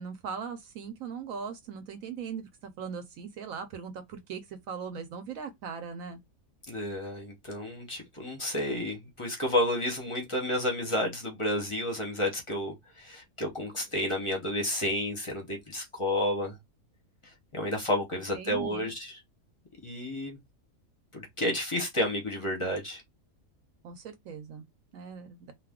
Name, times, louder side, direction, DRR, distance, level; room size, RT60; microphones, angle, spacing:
voice 1, 0.0-6.2 18.3-18.9 23.8-24.6 24.9-25.5, right 6 dB, 75° right, 1.0 m, -39 dB
voice 2, 6.7-16.5 17.5-19.2 19.8-20.4 21.1-23.0, left 1 dB, 25° left, 0.7 m, -31 dB
2.5 x 2.3 x 3.5 m
omnidirectional pair, 1.5 m